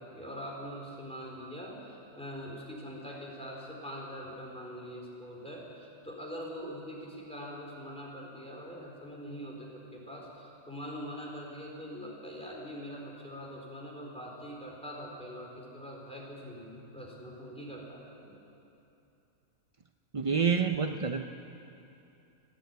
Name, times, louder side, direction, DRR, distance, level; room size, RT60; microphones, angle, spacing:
voice 1, 0.0-18.4, equal, 5° left, -3 dB, 4.4 m, -43 dB
voice 2, 20.1-21.3, right 6 dB, 60° right, 6 dB, 0.3 m, -28 dB
30.0 x 10.0 x 9.3 m, 2.8 s
omnidirectional pair, 1.5 m